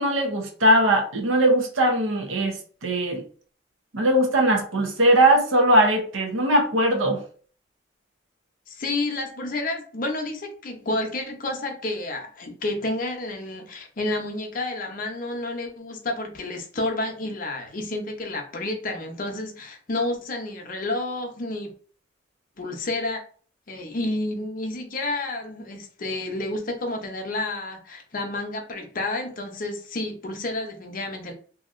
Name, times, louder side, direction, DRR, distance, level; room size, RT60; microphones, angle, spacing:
voice 1, 0.0-2.6 2.8-3.2 3.9-7.2, right 1 dB, 85° right, 3 dB, 0.8 m, -20 dB
voice 2, 8.7-21.7 22.6-23.2 23.7-31.3, left 2 dB, 45° left, 4 dB, 0.6 m, -30 dB
2.7 x 2.7 x 2.5 m, 0.42 s
head